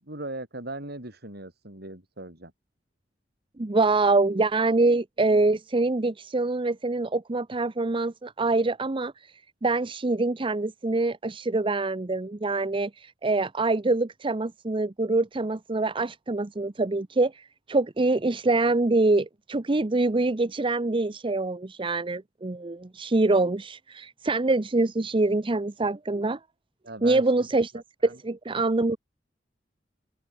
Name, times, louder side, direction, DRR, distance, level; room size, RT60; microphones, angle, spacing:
voice 1, 0.0-2.5 26.8-27.5 28.0-28.2, right 2 dB, 60° right, 6.7 m, -38 dB
voice 2, 3.6-26.4 27.0-29.0, right 2 dB, 30° right, 0.7 m, -25 dB
open air
head